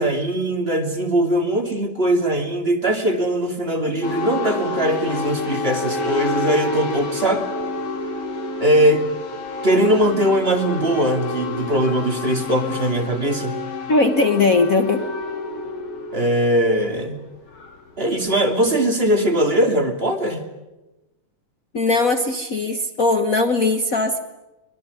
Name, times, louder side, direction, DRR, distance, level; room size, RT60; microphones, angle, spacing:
voice 1, 0.0-7.5 8.6-9.0 9.6-13.6 16.1-17.2 18.0-20.4, right 1 dB, 20° right, 4 dB, 2.6 m, -20 dB
sound 1, 4.0-18.3, left 2 dB, 50° left, 4.1 m, -29 dB
voice 2, 13.9-15.0 21.7-24.2, left 3 dB, 80° left, 7 dB, 0.7 m, -19 dB
23.5 x 22.5 x 9.6 m, 1.0 s
omnidirectional pair, 3.7 m